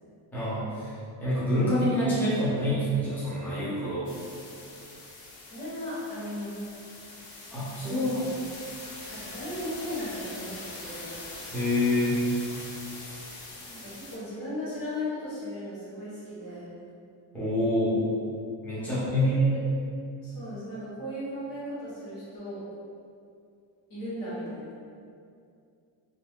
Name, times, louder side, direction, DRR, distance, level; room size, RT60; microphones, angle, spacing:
voice 1, 0.3-4.1 7.5-8.2 11.5-12.2 17.3-18.1 18.6-19.3, left 1 dB, 5° left, -12 dB, 0.7 m, -26 dB
sound 1, 4.1-14.2, left 2 dB, 65° left, 0.6 m, -43 dB
voice 2, 5.4-6.6 7.9-8.3 9.1-11.1 13.7-16.7 18.7-19.6 20.2-22.6 23.9-24.7, left 1 dB, 45° left, -10 dB, 1.2 m, -36 dB
2.4 x 2.1 x 3.4 m, 2.4 s
cardioid pair, 150°, 46 cm